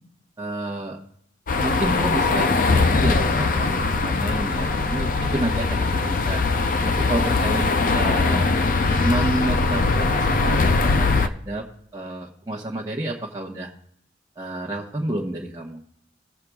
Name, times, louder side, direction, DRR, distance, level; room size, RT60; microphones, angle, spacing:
voice 1, 0.4-1.0 1.6-6.4 6.9-7.7 7.9-8.5 9.0-11.7 11.9-13.7 14.4-15.8, right 1 dB, 20° right, -4 dB, 1.0 m, -29 dB
sound 1, 1.5-11.3, left 3 dB, 45° left, 0.5 m, -21 dB
19.0 x 7.5 x 2.3 m, 0.68 s
head